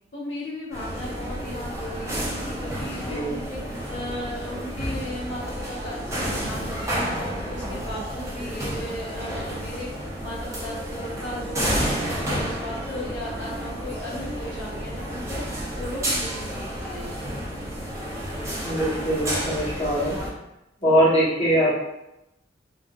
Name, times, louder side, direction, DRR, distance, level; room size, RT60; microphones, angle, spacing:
voice 1, 0.1-3.6 3.9-9.9 10.2-15.4 15.7-17.2, left 1 dB, 85° left, -6 dB, 1.0 m, -36 dB
sound 1, 0.7-20.3, equal, 15° right, 0.6 m, -31 dB
voice 2, 18.6-20.2 20.8-21.7, equal, 35° left, -8 dB, 1.0 m, -22 dB
3.7 x 2.1 x 2.3 m, 0.88 s
head